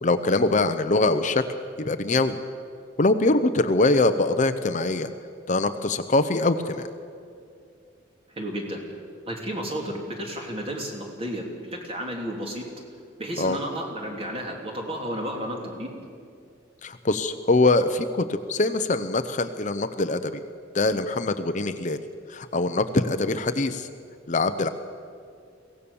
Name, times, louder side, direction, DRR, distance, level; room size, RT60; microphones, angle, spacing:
voice 1, 0.0-1.4 1.8-2.4 3.0-5.1 5.5-6.9 13.4-13.6 16.8-20.4 20.7-22.0 22.3-23.9 24.3-24.7, left 2 dB, 40° left, 9 dB, 0.7 m, -23 dB
voice 2, 8.3-8.8 9.3-12.7 13.2-15.9, equal, 30° right, 1 dB, 3.2 m, -32 dB
23.0 x 17.0 x 7.1 m, 2.3 s
head